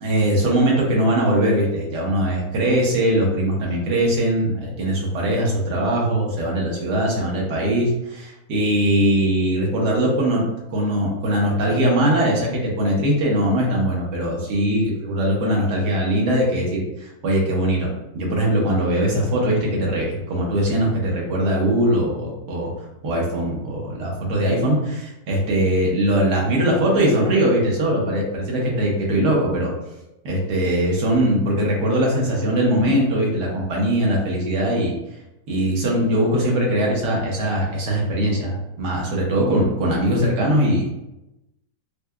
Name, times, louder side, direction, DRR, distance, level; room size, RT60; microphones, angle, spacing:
voice 1, 0.0-10.4 10.7-17.9 18.1-22.7 23.0-29.7 30.2-34.9 35.5-40.9, right 1 dB, 85° right, -2 dB, 1.5 m, -21 dB
4.6 x 2.2 x 2.2 m, 0.92 s
omnidirectional pair, 1.7 m